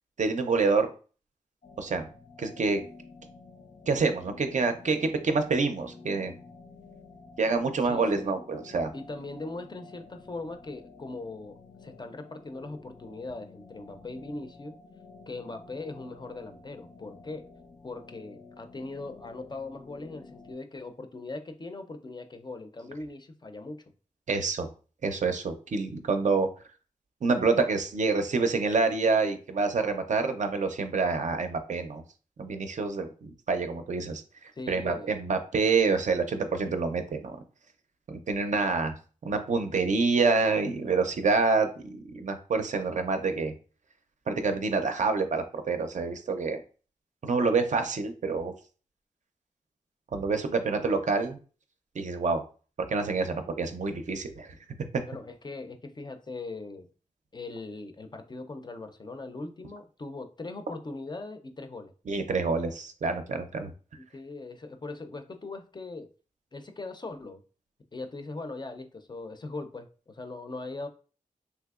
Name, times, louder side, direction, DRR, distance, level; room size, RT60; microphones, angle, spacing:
voice 1, 0.2-0.9 1.8-2.1 2.4-2.8 3.9-6.3 7.4-8.9 24.3-24.7 25.0-26.5 27.2-32.0 32.4-34.2 34.7-37.4 38.1-39.0 39.2-43.5 44.3-46.6 47.2-48.5 50.1-51.4 52.0-52.4 52.9-54.5 62.1-63.7, right 4 dB, 60° right, 7 dB, 0.5 m, -27 dB
sound 1, 1.6-20.6, left 3 dB, 85° left, 0.9 m, -51 dB
voice 2, 7.8-8.3 8.9-14.7 15.3-17.4 17.8-23.8 34.5-35.1 55.1-56.9 57.3-61.9 64.0-66.1 66.5-67.4 67.9-70.9, left 3 dB, 30° left, 7 dB, 0.4 m, -40 dB
3.3 x 2.8 x 2.3 m, 0.37 s
wide cardioid pair, 80°, 14 cm